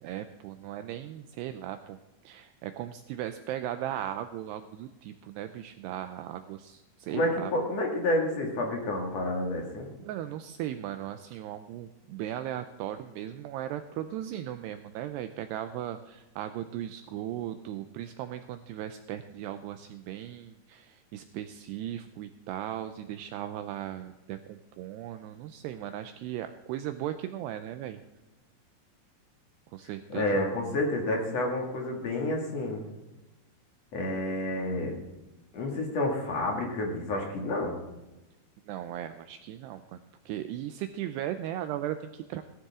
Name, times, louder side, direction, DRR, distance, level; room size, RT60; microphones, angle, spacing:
voice 1, 0.0-2.0 2.2-7.5 10.0-28.0 29.7-30.3 38.7-42.4, right 11 dB, 90° right, 9 dB, 2.3 m, -37 dB
voice 2, 7.1-9.9 30.1-32.9 33.9-35.0 35.5-37.7, left 1 dB, 45° left, 0 dB, 2.4 m, -29 dB
17.5 x 13.0 x 3.7 m, 1.1 s
omnidirectional pair, 5.4 m